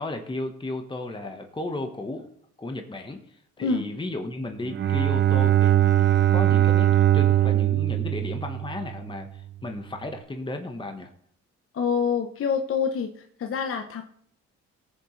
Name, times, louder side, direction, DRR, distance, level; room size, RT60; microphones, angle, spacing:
voice 1, 0.0-2.3 2.6-3.2 3.6-11.1, left 2 dB, 15° left, 5 dB, 1.3 m, -34 dB
Bowed string instrument, 4.7-9.2, right 13 dB, 35° right, 0.5 m, -21 dB
voice 2, 11.7-13.1 13.4-14.0, left 6 dB, 45° left, 5 dB, 1.0 m, -26 dB
18.5 x 7.1 x 3.3 m, 0.64 s
cardioid pair, 90°, 30 cm